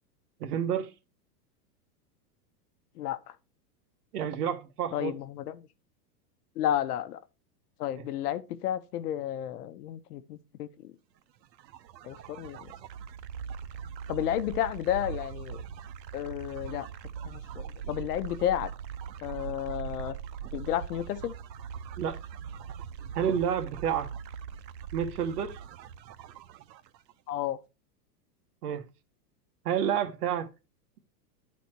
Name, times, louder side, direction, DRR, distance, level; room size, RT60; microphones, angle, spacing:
voice 1, 0.4-0.9 4.1-5.1 8.0-8.1 22.0-22.2 23.1-24.1 24.9-25.6 28.6-28.9 29.6-30.5, right 8 dB, 65° right, 1.3 m, -29 dB
voice 2, 3.0-3.3 4.9-5.7 6.6-7.2 7.8-10.9 12.0-12.7 14.1-15.6 16.1-16.9 17.2-18.7 19.2-20.1 20.5-21.3 27.3-27.6, left 11 dB, 65° left, 1.0 m, -32 dB
sound 1, 11.4-27.1, right 7 dB, 85° right, 0.8 m, -41 dB
11.0 x 4.2 x 4.4 m
supercardioid pair, 165°, 50 cm